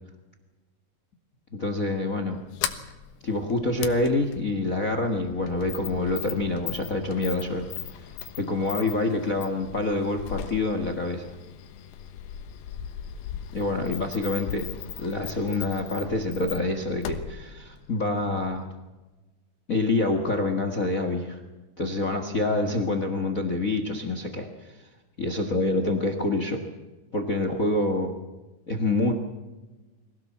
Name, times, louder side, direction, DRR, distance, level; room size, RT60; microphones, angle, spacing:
voice 1, 1.5-2.4 3.2-7.7 8.4-11.3 13.5-14.7 15.0-18.7 19.7-21.4 21.8-24.8 25.2-26.6 27.1-28.2 28.7-29.1, left 2 dB, 65° left, 7 dB, 0.8 m, -26 dB
Sliding door, 2.3-18.7, left 9 dB, 85° left, 3.2 m, -39 dB
23.5 x 17.5 x 7.3 m, 1.2 s
omnidirectional pair, 4.3 m